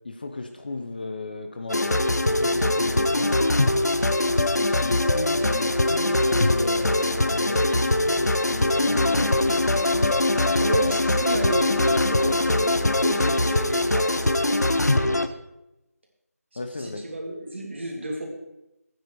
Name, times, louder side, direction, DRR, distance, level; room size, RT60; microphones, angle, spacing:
voice 1, 0.0-2.0 2.3-3.4 4.6-9.6 16.5-17.1, left 2 dB, 35° left, 6 dB, 0.9 m, -34 dB
sound 1, 1.7-15.3, left 2 dB, 90° left, 1.0 m, -22 dB
voice 2, 10.4-14.6 14.9-15.2 16.8-18.3, right 2 dB, 45° right, 1 dB, 2.8 m, -32 dB
12.5 x 9.5 x 4.7 m, 0.90 s
figure-of-eight pair, 170°, 9 cm